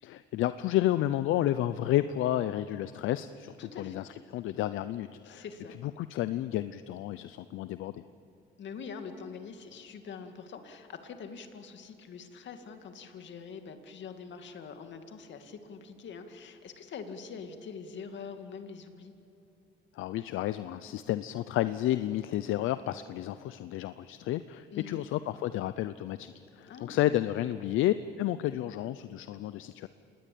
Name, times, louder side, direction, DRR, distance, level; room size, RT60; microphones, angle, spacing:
voice 1, 0.0-5.4 5.8-8.0 19.9-29.9, left 13 dB, 85° left, 13 dB, 0.6 m, -31 dB
voice 2, 3.6-4.0 5.2-5.8 8.6-19.1 24.7-25.0 26.6-27.2, left 5 dB, 65° left, 6 dB, 2.2 m, -44 dB
27.0 x 19.5 x 8.6 m, 2.8 s
cardioid pair, 90°, 20 cm